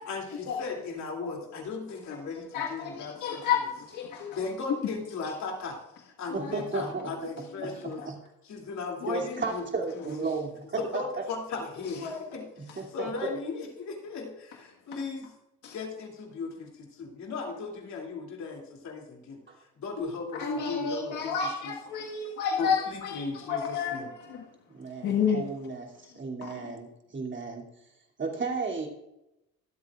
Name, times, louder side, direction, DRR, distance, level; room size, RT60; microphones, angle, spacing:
voice 1, 0.1-3.7 4.3-8.0 8.4-9.7 9.9-10.1 10.8-15.3 15.7-19.4 19.7-21.8 22.6-24.1, left 4 dB, 65° left, 0 dB, 3.0 m, -37 dB
voice 2, 2.5-3.6 3.9-4.3 6.3-6.5 12.0-12.2 15.6-15.7 20.4-23.2 23.5-24.0 25.0-25.4, left 7 dB, 85° left, -2 dB, 1.7 m, -30 dB
voice 3, 6.3-7.1 7.6-8.2 9.1-11.2 12.6-13.3 19.5-19.6 24.7-27.7 28.2-28.9, right 4 dB, 40° right, -1 dB, 2.9 m, -34 dB
24.0 x 8.1 x 2.5 m, 0.89 s
cardioid pair, 90°, 30 cm